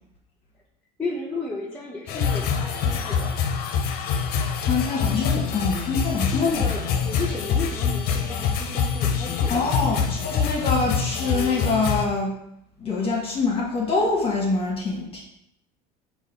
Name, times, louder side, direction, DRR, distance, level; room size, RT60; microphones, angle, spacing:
voice 1, 1.0-3.4 6.3-9.8, left 3 dB, 10° left, -6 dB, 0.8 m, -33 dB
sound 1, 2.1-12.1, left 6 dB, 55° left, 0.6 m, -25 dB
voice 2, 4.6-6.5 9.5-12.3 12.8-15.2, left 3 dB, 30° left, -3 dB, 1.1 m, -25 dB
5.1 x 2.5 x 4.0 m, 0.77 s
supercardioid pair, 105°, 20 cm